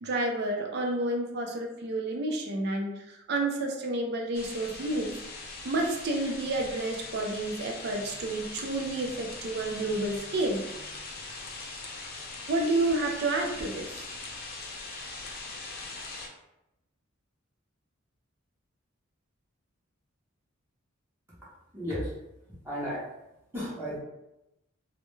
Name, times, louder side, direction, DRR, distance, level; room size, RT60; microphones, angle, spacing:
voice 1, 0.0-5.1 5.6-10.6 12.5-14.0, right 2 dB, 50° right, 1 dB, 0.4 m, -30 dB
sound 1, 4.3-16.3, left 3 dB, 45° left, 0.4 m, -41 dB
voice 2, 21.7-22.1 22.6-23.0 23.5-24.0, equal, 10° right, -9 dB, 0.6 m, -33 dB
2.2 x 2.1 x 3.0 m, 0.90 s
head